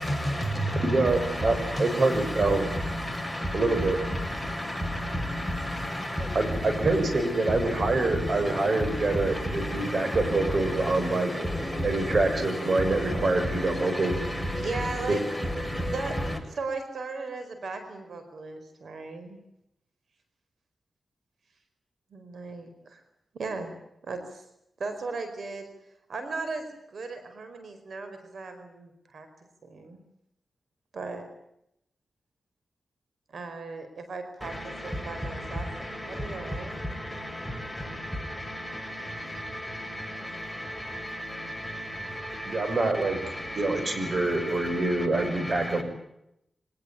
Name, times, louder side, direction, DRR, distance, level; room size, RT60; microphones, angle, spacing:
voice 1, 0.0-16.4 39.8-39.9 40.9-41.0 41.8-41.9, equal, ahead, 6.8 m, -31 dB
voice 2, 0.8-2.7 3.5-4.0 6.4-11.3 11.8-14.1 15.1-15.2 42.5-43.2 43.6-45.8, right 2 dB, 55° right, 6.8 m, -25 dB
voice 3, 14.5-15.2 15.8-16.1 16.5-19.4 22.1-23.0 23.3-23.7 24.0-24.4 24.8-25.7 26.1-29.3 29.6-30.0 30.9-31.3 33.3-35.7 36.1-37.0, right 3 dB, 75° right, 4.7 m, -37 dB
24.0 x 19.0 x 9.0 m
cardioid pair, 65°, 0 cm